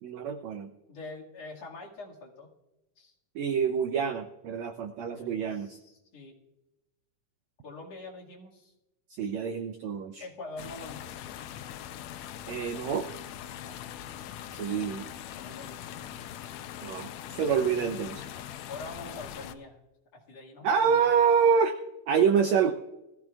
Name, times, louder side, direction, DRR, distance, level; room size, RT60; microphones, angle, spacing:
voice 1, 0.0-0.7 3.3-5.8 9.1-10.2 12.5-13.1 14.5-15.1 16.8-18.2 18.5-18.6 20.6-21.7 22.1-22.7, right 6 dB, 80° right, 7 dB, 1.6 m, -26 dB
voice 2, 0.9-2.5 3.0-3.1 5.0-6.4 7.6-8.7 10.2-11.4 13.5-13.8 15.4-16.1 18.7-19.8 20.1-21.2, left 3 dB, 50° left, -3 dB, 3.0 m, -45 dB
sound 1, 10.6-19.5, left 10 dB, 85° left, 1.6 m, -42 dB
20.5 x 15.0 x 2.4 m, 0.97 s
omnidirectional pair, 4.0 m